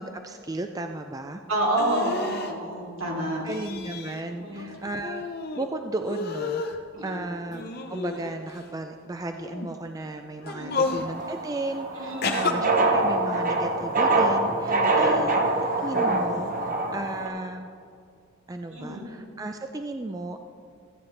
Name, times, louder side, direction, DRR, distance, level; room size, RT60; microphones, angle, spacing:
voice 1, 0.0-1.4 3.4-5.3 5.6-15.4 15.8-17.7 18.5-20.4, right 2 dB, 15° right, 6 dB, 0.3 m, -34 dB
voice 2, 1.5-3.4 4.4-4.6 6.9-7.3 10.5-10.9 12.0-12.7 14.7-15.3 18.7-19.0, right 1 dB, 75° right, -3 dB, 2.8 m, -29 dB
sound 1, 1.8-2.5 3.5-4.2 4.6-5.7 6.0-6.8 7.5-8.6 9.3-9.7 10.4-11.1 12.2-12.5, left 4 dB, 50° left, 0.7 m, -31 dB
sound 2, 10.7-17.3, right 2 dB, 40° right, 0.9 m, -25 dB
14.5 x 8.7 x 3.2 m, 2.3 s
head